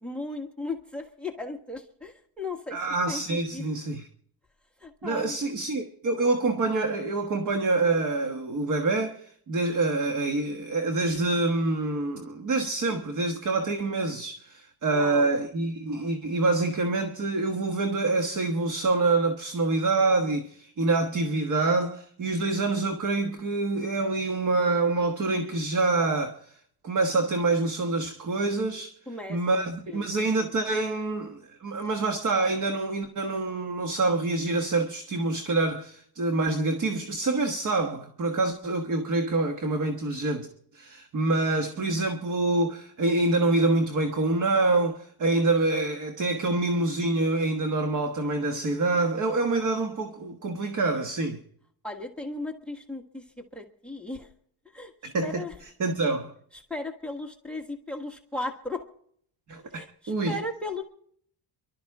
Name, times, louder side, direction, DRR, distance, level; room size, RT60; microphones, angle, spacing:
voice 1, 0.0-3.6 4.8-5.4 14.9-15.3 29.1-30.1 51.8-54.3 54.6-55.6 56.5-58.9 59.7-60.8, left 2 dB, ahead, 1.4 m, -36 dB
voice 2, 2.7-4.1 5.0-28.9 29.3-51.4 55.0-55.4 55.8-56.3 59.5-60.4, right 3 dB, 40° right, 1.4 m, -26 dB
29.5 x 12.5 x 3.6 m
cardioid pair, 165°, 48 cm